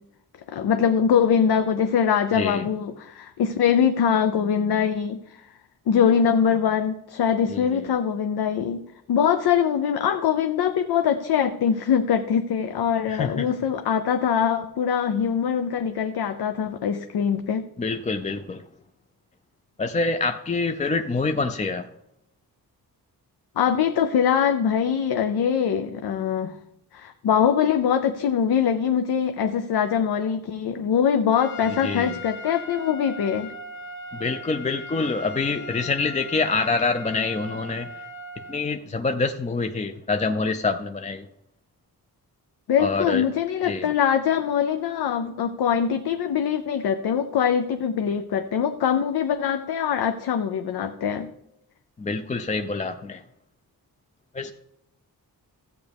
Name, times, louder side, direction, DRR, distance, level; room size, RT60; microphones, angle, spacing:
voice 1, 0.5-5.5 5.9-8.8 9.1-17.7 23.6-26.6 26.9-33.5 42.7-51.3, left 8 dB, 85° left, 8 dB, 0.6 m, -23 dB
voice 2, 2.3-2.7 7.5-7.8 13.1-13.5 17.8-18.6 19.8-21.9 31.8-32.1 34.1-37.9 38.5-41.2 42.8-43.2 43.6-43.9 52.0-53.2 54.3-54.5, left 3 dB, 20° left, 7 dB, 0.4 m, -26 dB
Trumpet, 31.3-38.6, left 2 dB, 55° left, 1.7 m, -39 dB
14.0 x 8.0 x 3.5 m, 0.82 s
wide cardioid pair, 120°, 37 cm